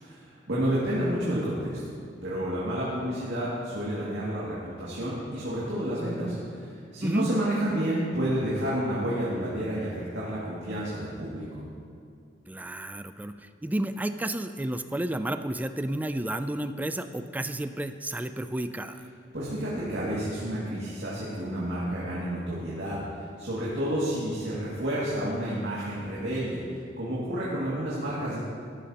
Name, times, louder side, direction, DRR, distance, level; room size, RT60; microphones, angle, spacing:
voice 1, 0.1-1.9 2.2-11.4 19.3-23.0 23.4-26.6 27.0-28.4, right 1 dB, 75° right, -8 dB, 2.3 m, -30 dB
voice 2, 12.5-19.1, right 1 dB, 10° right, 10 dB, 0.3 m, -32 dB
13.5 x 11.5 x 2.9 m, 2.3 s
head